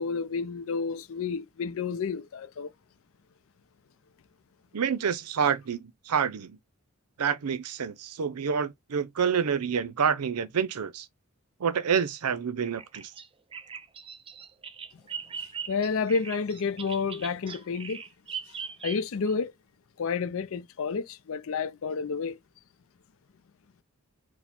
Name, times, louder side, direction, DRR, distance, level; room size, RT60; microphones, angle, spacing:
voice 1, 0.0-2.7 15.7-18.0 18.8-19.5 20.0-22.4, left 5 dB, 65° left, 0.4 m, -30 dB
voice 2, 4.7-6.6 7.2-11.1 11.6-13.1, right 7 dB, 90° right, 0.6 m, -28 dB
Bird vocalization bird call bird song, 12.8-19.3, right 6 dB, 25° right, 0.4 m, -40 dB
4.8 x 2.1 x 3.6 m
head